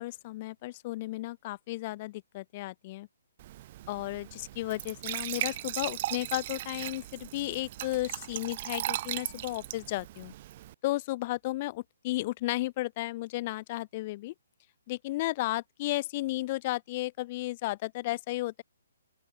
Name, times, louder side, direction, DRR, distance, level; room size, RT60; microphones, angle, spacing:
voice 1, 0.0-3.1 3.9-10.3 10.8-14.3 14.9-18.6, left 18 dB, 35° left, 0.3 m, -34 dB
Glass / Trickle dribble / Fill (with liquid), 3.4-10.7, right 14 dB, 40° right, 0.6 m, -38 dB
open air
hypercardioid pair, 150°, 0 cm